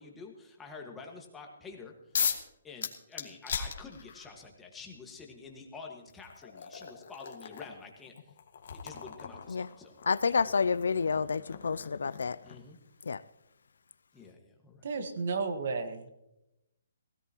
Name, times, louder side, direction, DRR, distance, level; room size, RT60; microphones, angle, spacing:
voice 1, 0.0-1.9 2.6-8.3 8.7-10.0 10.3-10.6 11.5-11.7 12.4-12.8 14.1-14.9, left 4 dB, 10° left, 1.7 m, -48 dB
sound 1, 2.1-2.5 2.8-4.4 5.5-5.6 6.1-12.8, left 7 dB, 55° left, 1.8 m, -38 dB
voice 2, 10.1-12.4 13.0-13.2, left 5 dB, 80° left, 0.5 m, -29 dB
voice 3, 14.8-16.1, right 4 dB, 55° right, 1.6 m, -33 dB
17.0 x 16.5 x 3.0 m
hypercardioid pair, 165°, 0 cm